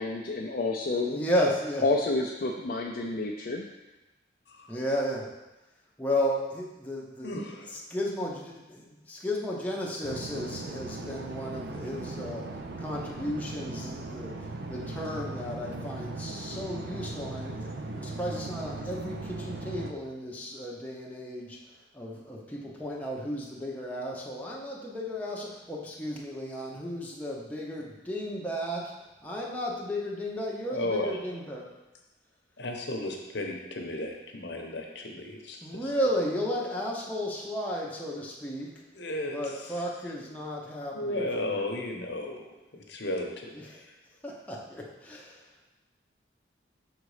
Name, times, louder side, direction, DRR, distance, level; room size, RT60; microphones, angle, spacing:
voice 1, 0.0-1.2 1.8-3.7, left 3 dB, 50° left, 1 dB, 0.4 m, -29 dB
voice 2, 1.1-1.8 4.7-5.3 6.0-7.4 7.7-12.5 12.8-14.4 14.7-21.6 21.9-28.9 29.2-31.7 35.6-38.7 39.3-41.7 43.7-43.8 44.2-45.4, equal, 10° left, -4 dB, 0.7 m, -33 dB
voice 3, 7.2-7.7 30.7-31.2 32.6-35.9 38.9-39.8 40.9-42.5 42.7-43.9, left 1 dB, 65° left, 2 dB, 0.9 m, -34 dB
sound 1, 10.0-19.9, right 2 dB, 55° right, 0.5 m, -38 dB
5.9 x 4.0 x 4.8 m, 1.1 s
head